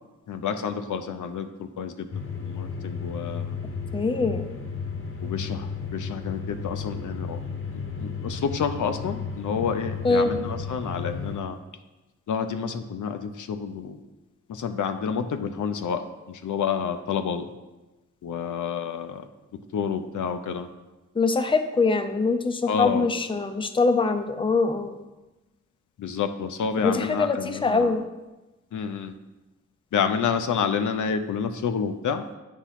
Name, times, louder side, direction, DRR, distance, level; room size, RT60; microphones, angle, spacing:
voice 1, 0.3-3.6 5.2-7.4 7.7-11.6 12.3-14.0 14.5-17.5 18.2-19.2 19.5-20.7 22.7-23.1 26.0-28.0 28.7-29.1 29.9-32.3, left 6 dB, 85° left, 8 dB, 0.6 m, -29 dB
sound 1, 2.1-11.4, left 5 dB, 50° left, 0.8 m, -33 dB
voice 2, 3.9-4.5 10.0-10.3 21.2-25.0 26.8-28.0, left 3 dB, 15° left, 8 dB, 0.5 m, -23 dB
8.4 x 3.0 x 5.7 m, 1.1 s
wide cardioid pair, 75°, 30 cm